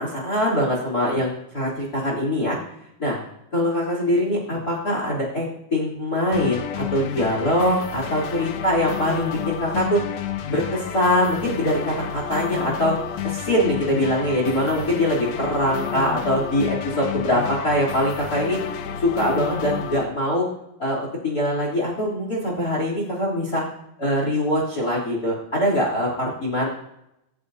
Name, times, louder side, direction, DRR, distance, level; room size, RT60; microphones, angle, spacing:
voice 1, 0.0-2.6 3.0-3.2 3.5-5.4 5.7-10.0 10.5-13.0 13.2-18.6 19.0-20.5 20.8-23.6 24.0-26.7, left 1 dB, 25° left, -1 dB, 3.6 m, -23 dB
sound 1, 6.3-20.0, left 8 dB, 65° left, 1.8 m, -31 dB
25.0 x 14.0 x 2.8 m, 0.84 s
omnidirectional pair, 4.1 m